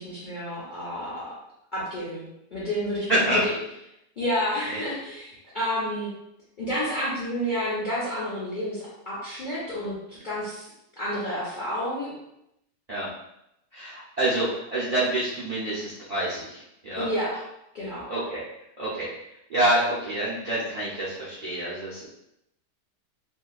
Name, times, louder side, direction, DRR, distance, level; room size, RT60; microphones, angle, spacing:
voice 1, 0.0-1.3 1.7-3.5 4.2-6.1 6.6-10.7 11.0-12.1 16.9-17.4 17.7-18.1, equal, 65° left, -9 dB, 0.4 m, -30 dB
voice 2, 3.1-3.4 4.7-4.8 12.9-13.1 13.7-17.1 18.1-18.4 18.8-19.1 19.5-22.1, right 1 dB, 85° right, -10 dB, 0.3 m, -27 dB
2.7 x 2.3 x 2.3 m, 0.82 s
omnidirectional pair, 1.8 m